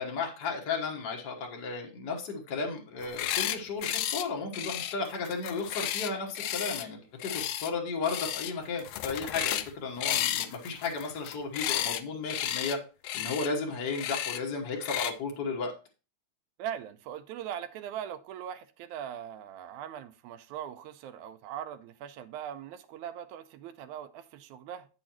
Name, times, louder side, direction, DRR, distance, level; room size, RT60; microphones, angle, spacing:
voice 1, 0.0-12.8 13.1-15.7, left 4 dB, 50° left, 1.3 m, -34 dB
sound 1, 3.0-3.6 3.8-4.2 4.5-6.8 7.2-7.7 8.0-8.5 8.8-9.7 10.0-12.0 12.3-12.8 13.0-13.5 13.9-14.4 14.8-15.1, left 12 dB, 85° left, 1.4 m, -32 dB
voice 2, 16.6-24.9, right 10 dB, 80° right, 2.0 m, -40 dB
8.9 x 6.3 x 2.9 m
omnidirectional pair, 3.4 m